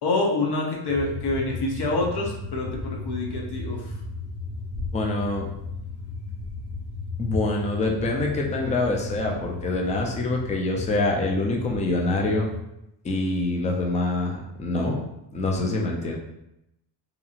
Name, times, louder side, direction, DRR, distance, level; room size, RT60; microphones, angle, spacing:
voice 1, 0.0-3.9, left 2 dB, 55° left, -1 dB, 0.8 m, -26 dB
sound 1, 0.9-12.6, left 3 dB, ahead, 1.4 m, -35 dB
voice 2, 4.9-5.5 7.2-12.5 13.0-15.0 15.3-16.2, left 2 dB, 15° left, 0 dB, 0.3 m, -25 dB
2.9 x 2.6 x 2.4 m, 0.86 s
cardioid pair, 100°, 48 cm